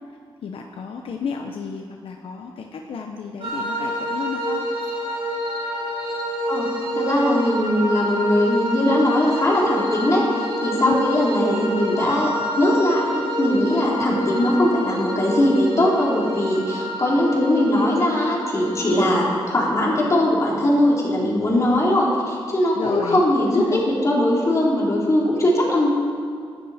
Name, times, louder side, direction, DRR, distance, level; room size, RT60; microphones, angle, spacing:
voice 1, 0.4-4.7 10.8-11.1 21.5-21.8 22.8-23.2 23.5-23.8, left 6 dB, 75° left, 3 dB, 0.9 m, -31 dB
sound 1, 3.4-19.3, equal, 75° right, 4.7 m, -28 dB
voice 2, 6.9-12.3 12.6-25.9, left 1 dB, 35° left, -4 dB, 3.6 m, -20 dB
20.0 x 12.0 x 4.3 m, 2.2 s
wide cardioid pair, 160°, 9 cm